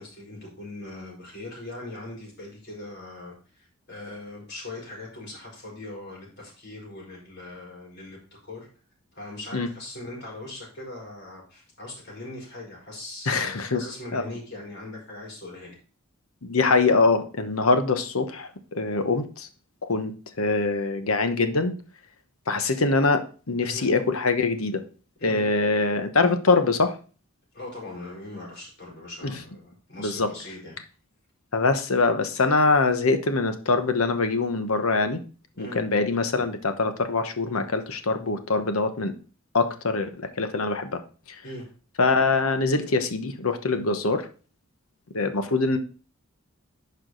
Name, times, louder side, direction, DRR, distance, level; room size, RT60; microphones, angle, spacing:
voice 1, 0.0-8.2 8.4-8.7 9.1-15.7 23.6-23.9 25.2-25.5 27.5-30.8 35.5-35.8 41.4-41.6, left 2 dB, 55° left, -2 dB, 4.7 m, -40 dB
voice 2, 13.3-13.9 14.1-14.2 16.4-18.5 18.7-19.5 19.8-21.7 22.5-24.8 25.2-26.9 29.2-29.3 30.0-30.3 31.5-35.2 35.6-39.1 39.5-41.0 42.0-44.2 45.1-45.8, left 3 dB, 90° left, 8 dB, 1.1 m, -23 dB
11.0 x 4.9 x 3.9 m, 0.38 s
head